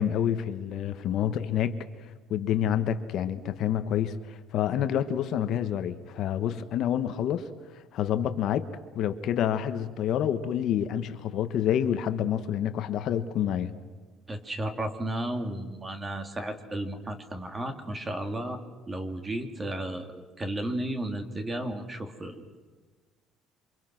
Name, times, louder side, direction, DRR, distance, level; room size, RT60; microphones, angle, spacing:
voice 1, 0.0-1.8 2.3-7.5 7.9-8.7 8.9-13.7, left 9 dB, 55° left, 9 dB, 1.5 m, -28 dB
voice 2, 14.3-18.6 18.9-22.6, right 1 dB, 15° right, 7 dB, 2.7 m, -33 dB
28.5 x 26.0 x 6.1 m, 1.4 s
cardioid pair, 150°, 0 cm